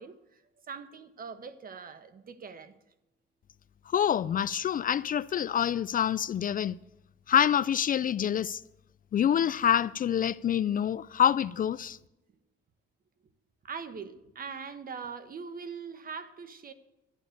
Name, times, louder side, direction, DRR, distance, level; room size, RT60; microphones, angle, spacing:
voice 1, 0.0-2.7 13.6-16.7, right 5 dB, 45° right, 1.3 m, -42 dB
voice 2, 3.9-6.8 7.3-8.6 9.1-12.0, left 9 dB, 45° left, 0.4 m, -26 dB
12.5 x 11.0 x 6.5 m
cardioid pair, 90°, 20 cm